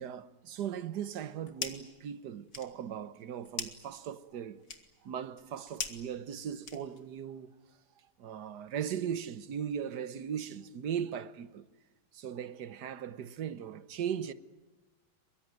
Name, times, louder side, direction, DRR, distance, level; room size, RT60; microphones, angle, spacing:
voice 1, 0.0-4.6 5.0-7.6 8.0-11.6 12.1-14.3, right 8 dB, 60° right, 1.5 m, -38 dB
sound 1, 1.1-2.0 2.3-7.2, left 5 dB, 50° left, 2.5 m, -43 dB
23.5 x 23.0 x 9.4 m
omnidirectional pair, 2.1 m